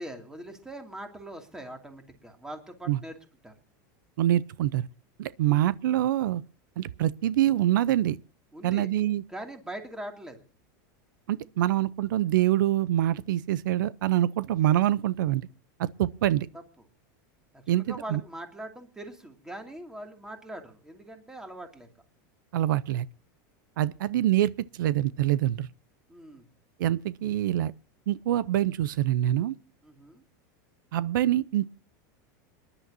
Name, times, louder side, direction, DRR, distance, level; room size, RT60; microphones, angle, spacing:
voice 1, 0.0-3.1 3.4-3.5 8.5-8.9 9.3-10.4 17.5-21.9 26.1-26.5 29.8-30.2, right 1 dB, 5° right, 2.5 m, -42 dB
voice 2, 4.2-4.9 5.2-6.4 6.8-8.2 8.6-9.2 11.3-15.5 15.8-16.5 17.7-18.2 22.5-23.1 23.8-25.7 26.8-27.7 28.1-29.6 30.9-31.7, right 13 dB, 90° right, 0.6 m, -25 dB
26.5 x 11.0 x 2.7 m
supercardioid pair, 150°, 10 cm